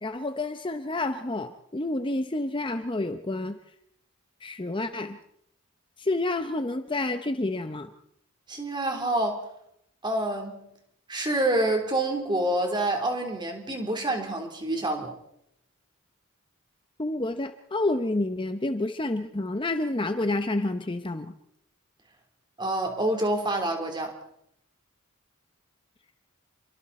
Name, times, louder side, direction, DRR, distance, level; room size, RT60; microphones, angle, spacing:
voice 1, 0.0-3.6 4.4-5.2 6.0-7.9 17.0-21.3, left 2 dB, 25° left, 8 dB, 0.8 m, -29 dB
voice 2, 8.5-9.4 10.0-10.6 11.1-15.1 22.6-24.2, right 1 dB, 20° right, 3 dB, 3.6 m, -27 dB
28.5 x 23.5 x 4.3 m, 0.73 s
head